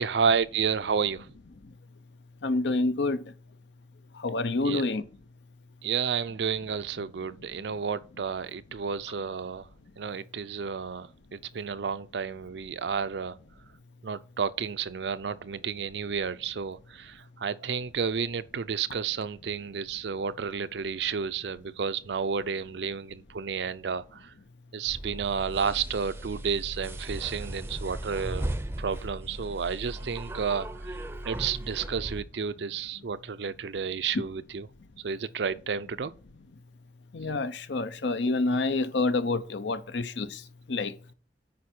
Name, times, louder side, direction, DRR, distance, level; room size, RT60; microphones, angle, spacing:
voice 1, 0.0-1.3 4.6-4.8 5.8-9.7 10.0-13.4 14.0-24.3 24.7-30.9 31.2-34.7 35.0-36.1, right 6 dB, 70° right, 0.5 m, -31 dB
voice 2, 2.4-3.2 4.2-5.0 37.1-40.4 40.7-40.9, left 3 dB, 80° left, 0.7 m, -27 dB
sound 1, 24.9-32.2, right 1 dB, 15° right, 0.6 m, -37 dB
9.4 x 4.5 x 4.4 m
head